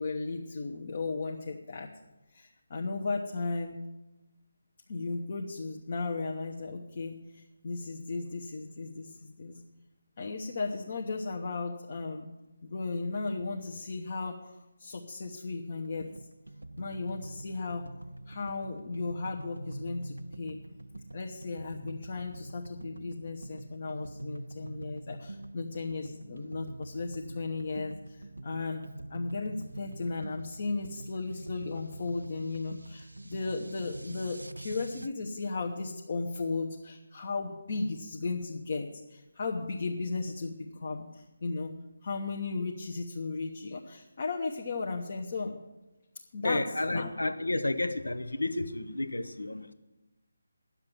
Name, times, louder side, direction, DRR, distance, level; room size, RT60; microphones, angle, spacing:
voice 1, 0.0-1.9 2.3-3.8 4.9-9.6 10.2-12.3 12.6-14.5 14.8-16.1 16.8-17.9 18.3-20.6 21.1-28.8 29.1-41.7 42.0-45.6 46.3-46.7 46.9-47.1, left 3 dB, 40° left, 1 dB, 1.1 m, -35 dB
sound 1, 15.8-35.1, right 1 dB, 75° right, 0.4 m, -45 dB
voice 2, 46.4-49.7, left 2 dB, 70° left, 11 dB, 0.9 m, -31 dB
10.5 x 7.3 x 9.4 m, 1.1 s
figure-of-eight pair, 150°, 0 cm